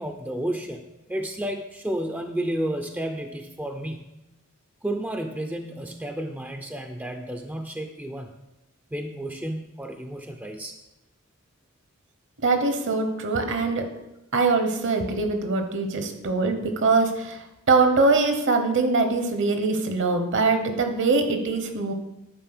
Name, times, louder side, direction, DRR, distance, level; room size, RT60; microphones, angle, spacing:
voice 1, 0.0-4.0 4.8-8.3 8.9-10.7, right 1 dB, 10° right, 4 dB, 0.5 m, -31 dB
voice 2, 12.4-13.9 14.3-21.9, right 3 dB, 55° right, 6 dB, 1.1 m, -23 dB
10.5 x 4.2 x 6.0 m, 0.94 s
head